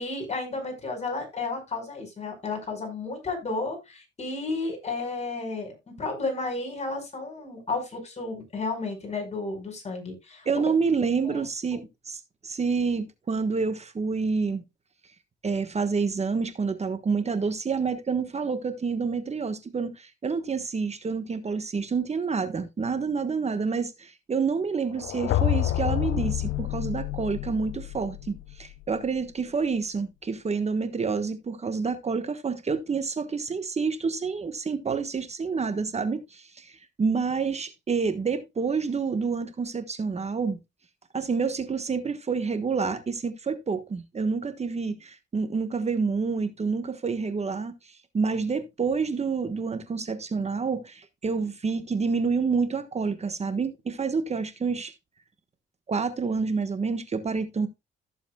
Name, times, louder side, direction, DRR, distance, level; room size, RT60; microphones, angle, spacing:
voice 1, 0.0-10.5 11.2-11.4 11.7-11.8, left 3 dB, 35° left, 5.0 m, -32 dB
voice 2, 10.4-14.6 15.4-40.6 41.1-47.7 48.1-54.9 55.9-57.7, right 5 dB, 35° right, 1.3 m, -28 dB
sound 1, 24.9-28.9, left 14 dB, 80° left, 0.6 m, -28 dB
15.0 x 7.0 x 2.3 m
cardioid pair, 90°, 20 cm